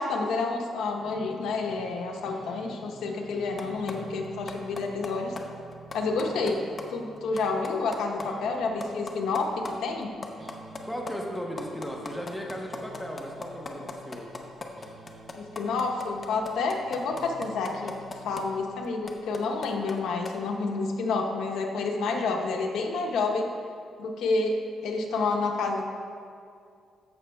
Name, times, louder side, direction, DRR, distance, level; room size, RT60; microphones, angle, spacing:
voice 1, 0.0-5.3 5.9-6.6 6.9-10.1 15.4-17.9 18.2-23.4 24.0-24.6 24.8-25.8, left 3 dB, 85° left, 2 dB, 0.9 m, -29 dB
sound 1, 1.0-7.9 8.2-19.0, right 2 dB, 40° right, 0.8 m, -49 dB
sound 2, 3.6-3.9 4.2-5.1 5.4-5.5 5.7-6.5 6.8-6.9 7.2-8.2 8.5-8.6 8.8-9.7 10.0-18.4 18.8-20.0 20.2-20.3, left 3 dB, 30° left, 0.7 m, -38 dB
voice 2, 10.9-14.5, equal, ahead, -1 dB, 0.9 m, -36 dB
14.0 x 6.2 x 2.3 m, 2.3 s
cardioid pair, 110°, 0 cm